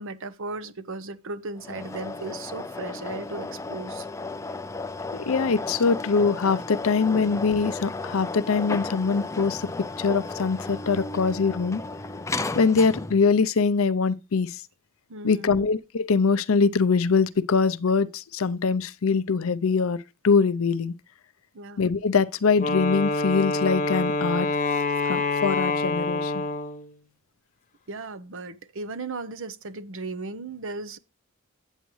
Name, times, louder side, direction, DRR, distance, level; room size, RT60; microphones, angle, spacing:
voice 1, 0.0-4.1 15.1-15.7 21.5-21.9 27.9-31.0, right 3 dB, 60° right, 0.8 m, -36 dB
sound 1, 1.6-13.3, left 3 dB, 15° left, 0.4 m, -34 dB
voice 2, 5.1-9.7 10.0-11.8 12.5-14.6 15.2-20.0 20.2-20.9 21.8-24.5 25.1-26.4, left 5 dB, 65° left, 0.5 m, -23 dB
Wind instrument woodwind instrument, 22.6-26.9, left 3 dB, 35° left, 1.0 m, -26 dB
9.0 x 8.2 x 3.1 m
head